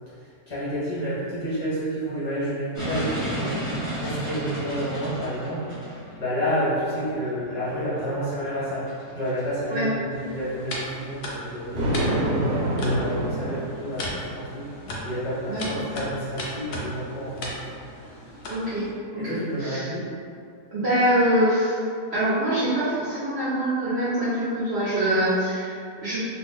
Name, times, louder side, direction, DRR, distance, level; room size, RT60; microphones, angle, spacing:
voice 1, 0.5-5.6 6.2-8.8 9.1-14.7 15.0-17.7 19.2-20.1, equal, 50° left, -10 dB, 1.0 m, -30 dB
sound 1, 2.7-15.0, right 1 dB, 20° right, 0.6 m, -36 dB
sound 2, 10.1-18.9, left 1 dB, 85° left, 0.5 m, -37 dB
Thunder, 11.7-14.3, right 1 dB, 70° right, 1.2 m, -26 dB
voice 2, 15.5-15.9 18.5-18.9 19.1-19.2 19.6-19.9 20.7-21.8 22.1-26.2, right 1 dB, 50° right, -11 dB, 0.9 m, -24 dB
2.6 x 2.4 x 3.5 m, 2.4 s
omnidirectional pair, 1.7 m